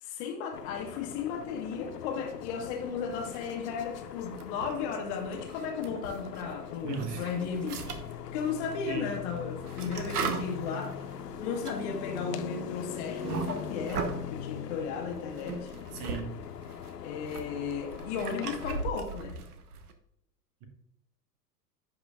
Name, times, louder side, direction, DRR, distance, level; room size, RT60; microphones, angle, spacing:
voice 1, 0.0-7.8 8.3-11.0 11.4-15.7 17.0-19.4, left 6 dB, 40° left, 1.3 m, -35 dB
sound 1, 0.5-18.9, left 8 dB, 75° left, 0.6 m, -41 dB
sound 2, 3.1-3.8 4.2-6.5 6.9-14.3 15.0-16.2 16.5-19.9, right 5 dB, 65° right, 1.0 m, -39 dB
voice 2, 6.8-7.3 8.9-9.1 15.9-16.4, right 5 dB, 45° right, 1.2 m, -36 dB
10.5 x 5.1 x 2.4 m
figure-of-eight pair, 90°, 49 cm